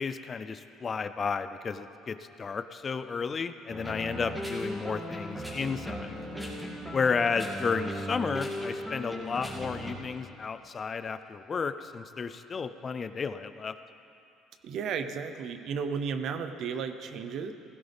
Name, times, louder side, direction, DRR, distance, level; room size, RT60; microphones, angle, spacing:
voice 1, 0.0-6.1 6.9-13.8, left 5 dB, 35° left, 11 dB, 0.5 m, -32 dB
sound 1, 3.7-9.9, equal, 10° right, 2.4 m, -37 dB
voice 2, 14.6-17.5, right 6 dB, 60° right, 9 dB, 0.8 m, -33 dB
16.5 x 15.5 x 3.6 m, 2.6 s
cardioid pair, 100°, 0 cm